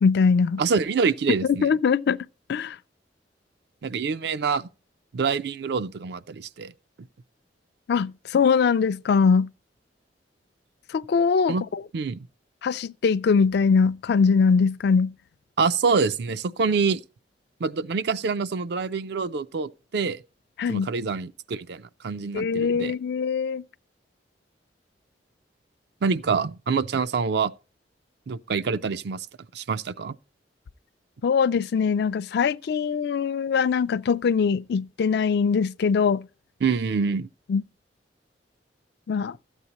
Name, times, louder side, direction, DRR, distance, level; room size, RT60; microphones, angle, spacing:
voice 1, 0.0-0.6 1.4-2.8 7.9-9.5 10.9-11.8 12.6-15.1 20.6-20.9 22.3-23.6 31.2-36.3 37.5-37.6 39.1-39.4, left 5 dB, 65° left, 0.3 m, -22 dB
voice 2, 0.6-1.7 3.8-4.7 5.1-6.7 11.5-11.6 11.9-12.3 15.6-17.0 17.6-20.2 20.7-23.0 26.0-27.5 28.3-29.3 29.5-30.2 36.6-37.3, right 5 dB, 65° right, 0.5 m, -26 dB
13.0 x 8.2 x 2.9 m
head